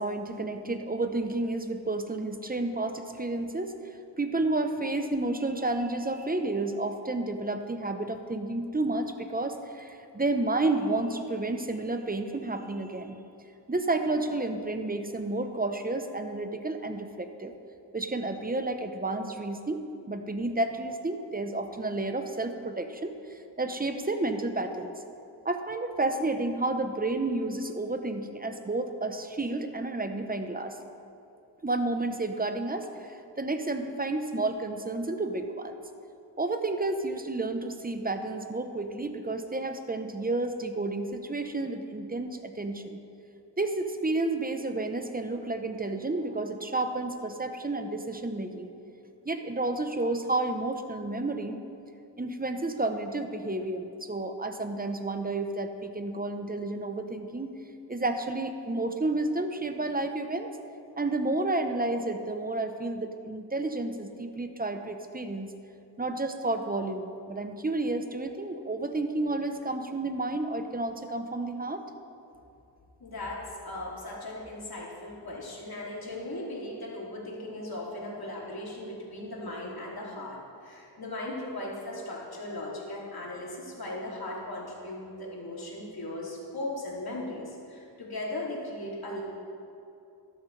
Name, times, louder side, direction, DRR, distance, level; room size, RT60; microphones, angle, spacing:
voice 1, 0.0-13.2 13.7-17.5 17.9-19.8 20.1-24.9 25.4-30.8 31.6-35.8 36.4-43.0 43.6-48.7 49.2-51.6 52.2-57.5 57.9-60.5 61.0-65.5 66.0-71.9, right 2 dB, 20° right, 7 dB, 0.8 m, -31 dB
voice 2, 73.0-89.2, left 1 dB, 55° left, -4 dB, 2.9 m, -38 dB
12.5 x 12.0 x 3.3 m, 2.7 s
cardioid pair, 60°, 44 cm